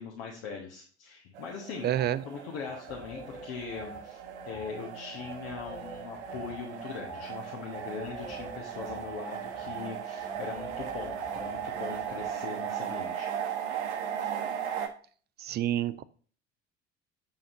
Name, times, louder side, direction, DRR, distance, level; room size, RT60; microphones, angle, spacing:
voice 1, 0.0-1.9 2.2-13.3, left 5 dB, 60° left, -1 dB, 1.4 m, -41 dB
sound 1, 1.3-14.9, right 8 dB, 70° right, 0.9 m, -37 dB
voice 2, 1.8-2.2 15.4-16.0, right 12 dB, 30° right, 16 dB, 0.4 m, -28 dB
sound 2, 2.0-2.2 2.6-12.3, left 1 dB, 15° left, 0.8 m, -48 dB
7.4 x 5.6 x 2.6 m, 0.43 s
figure-of-eight pair, 60°, 35 cm